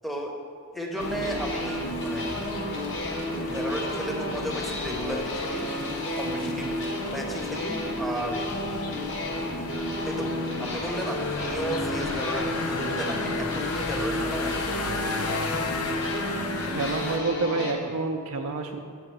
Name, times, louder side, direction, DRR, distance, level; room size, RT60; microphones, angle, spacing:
voice 1, 0.0-0.4 0.7-2.3 3.5-5.7 6.2-6.7 7.0-8.5 10.0-14.5, equal, ahead, 0 dB, 0.7 m, -34 dB
sound 1, 1.0-17.2, left 3 dB, 90° left, 0.7 m, -36 dB
sound 2, 1.0-17.7, left 1 dB, 60° left, 1.2 m, -31 dB
voice 2, 16.7-18.8, right 3 dB, 70° right, 4 dB, 0.4 m, -28 dB
6.1 x 4.9 x 6.7 m, 2.3 s
head